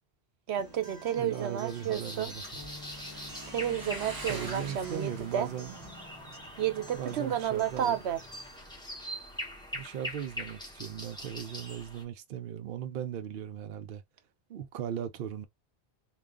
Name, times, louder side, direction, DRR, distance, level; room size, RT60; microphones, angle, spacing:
Motorcycle, 0.5-8.7, right 2 dB, 25° right, 0.6 m, -47 dB
voice 1, 0.5-2.3 3.5-5.5 6.6-8.2, right 10 dB, 80° right, 1.0 m, -31 dB
Acoustic guitar, 0.6-8.6, left 2 dB, 30° left, 1.3 m, -51 dB
voice 2, 1.1-2.4 4.3-5.7 6.9-8.0 9.7-14.0 14.5-15.5, right 9 dB, 60° right, 0.7 m, -38 dB
sound 1, 1.7-12.0, equal, 5° left, 0.8 m, -43 dB
3.3 x 2.3 x 3.7 m
omnidirectional pair, 1.1 m